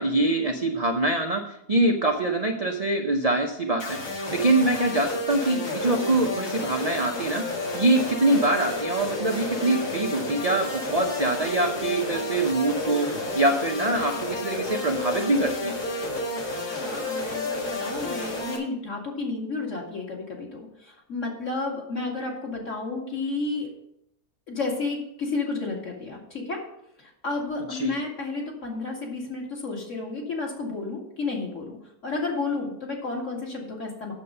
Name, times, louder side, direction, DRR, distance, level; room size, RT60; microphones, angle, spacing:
voice 1, 0.0-15.8 27.7-28.0, right 2 dB, 40° right, 3 dB, 0.5 m, -24 dB
sound 1, 3.8-18.6, left 2 dB, 75° left, 2.4 m, -31 dB
voice 2, 16.7-23.7 24.5-26.6 27.2-31.8 32.0-34.1, left 3 dB, 50° left, -2 dB, 2.5 m, -31 dB
8.3 x 6.9 x 5.4 m, 0.77 s
omnidirectional pair, 1.7 m